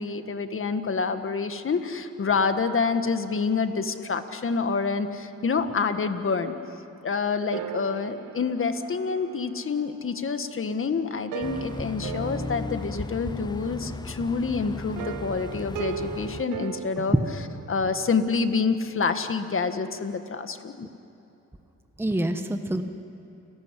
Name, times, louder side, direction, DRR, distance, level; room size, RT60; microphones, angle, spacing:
voice 1, 0.0-6.5 7.0-17.2 17.7-20.9, left 5 dB, 45° left, 8 dB, 1.7 m, -27 dB
sound 1, 7.5-10.5 11.1-13.8 15.0-18.2, right 10 dB, 90° right, 0.7 m, -39 dB
sound 2, 11.4-16.4, left 3 dB, 15° left, 0.6 m, -36 dB
voice 2, 22.0-22.8, right 1 dB, 10° right, 6 dB, 1.3 m, -25 dB
30.0 x 14.5 x 10.0 m, 3.0 s
cardioid pair, 90°, 30 cm